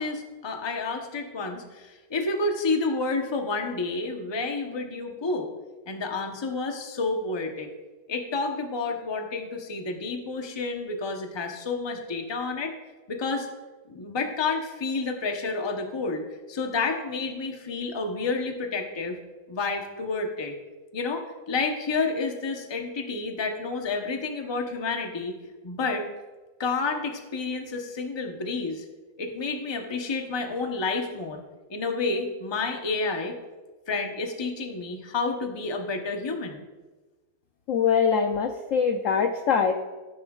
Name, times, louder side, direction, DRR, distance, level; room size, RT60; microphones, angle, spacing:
voice 1, 0.0-5.5 5.9-7.7 8.1-12.8 13.1-13.5 13.9-19.2 19.5-20.5 20.9-25.4 25.6-26.1 26.6-28.8 29.2-31.4 31.7-33.4 33.9-36.6, left 3 dB, 30° left, 3 dB, 0.5 m, -30 dB
voice 2, 37.7-39.7, left 6 dB, 80° left, 5 dB, 0.7 m, -23 dB
15.0 x 9.7 x 2.4 m, 1.2 s
omnidirectional pair, 2.1 m